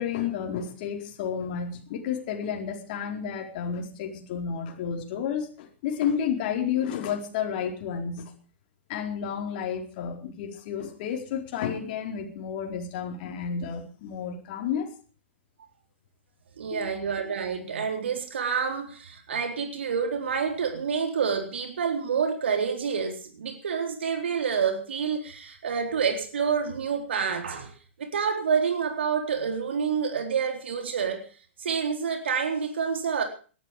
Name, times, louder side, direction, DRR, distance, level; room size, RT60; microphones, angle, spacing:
voice 1, 0.0-8.3 8.9-14.9 16.7-16.9, left 7 dB, 45° left, 4.4 m, -31 dB
voice 2, 16.6-27.7 28.0-31.3 31.6-33.2, right 6 dB, 65° right, 4.0 m, -28 dB
18.5 x 13.0 x 5.0 m
figure-of-eight pair, 115°, 6 cm